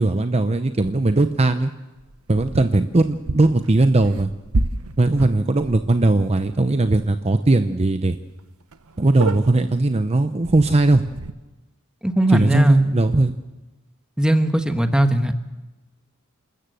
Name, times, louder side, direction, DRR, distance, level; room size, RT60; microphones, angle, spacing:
voice 1, 0.0-1.7 2.3-4.3 5.0-8.2 9.0-11.0 12.3-13.3, right 2 dB, 30° right, 9 dB, 0.7 m, -18 dB
sound 1, 0.8-1.3 2.0-6.5 6.9-7.1 7.4-7.5 8.0-8.1 8.3-8.4 8.7-9.8 10.4-11.3, right 2 dB, 80° right, 0.9 m, -31 dB
voice 2, 12.0-12.8 14.2-15.3, right 1 dB, 5° right, 7 dB, 1.2 m, -19 dB
28.0 x 13.5 x 7.8 m, 1.1 s
head